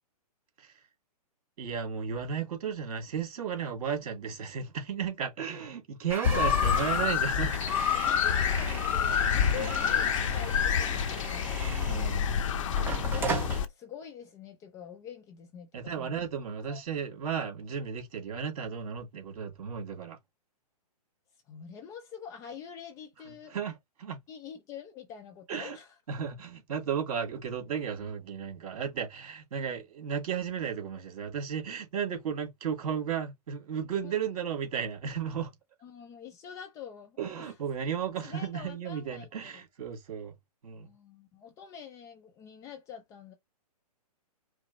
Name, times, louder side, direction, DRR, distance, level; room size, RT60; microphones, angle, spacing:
voice 1, 1.6-7.5 9.6-9.8 11.8-12.3 15.7-20.2 23.5-24.2 25.5-25.8 26.1-35.5 37.2-40.3 40.6-40.9, right 7 dB, 55° right, 2.4 m, -34 dB
sound 1, 6.1-12.3 12.8-13.6, right 4 dB, 10° right, 0.8 m, -38 dB
sound 2, 6.2-13.7, left 8 dB, 50° left, 0.7 m, -27 dB
voice 2, 6.3-6.6 7.9-11.4 11.8-12.3 13.1-16.2 16.7-16.8 21.5-23.5 24.3-26.0 34.0-34.2 35.8-37.5 38.2-39.6 40.8-43.3, left 8 dB, 15° left, 0.5 m, -45 dB
5.1 x 2.0 x 3.9 m
hypercardioid pair, 150°, 21 cm